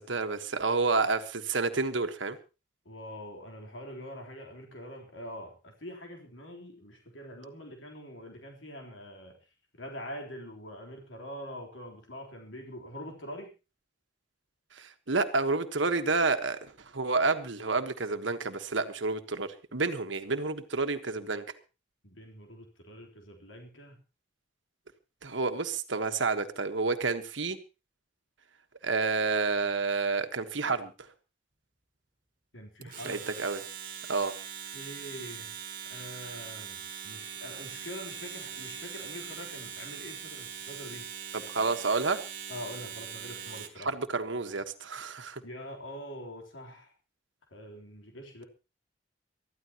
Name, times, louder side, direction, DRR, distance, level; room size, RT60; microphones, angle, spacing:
voice 1, 0.0-2.4 14.7-21.4 25.2-27.6 28.8-31.1 32.8-33.7 34.1-34.3 41.3-42.2 43.8-45.4, right 4 dB, 80° right, 8 dB, 1.4 m, -30 dB
voice 2, 2.9-9.3 9.7-13.5 22.0-24.0 32.5-33.2 34.7-35.6 35.9-41.1 42.5-43.9 45.4-46.9 47.5-48.4, equal, 90° left, 2 dB, 3.8 m, -44 dB
Domestic sounds home sounds, 32.8-43.8, right 8 dB, 45° right, 2.1 m, -42 dB
23.5 x 14.0 x 3.0 m, 0.31 s
head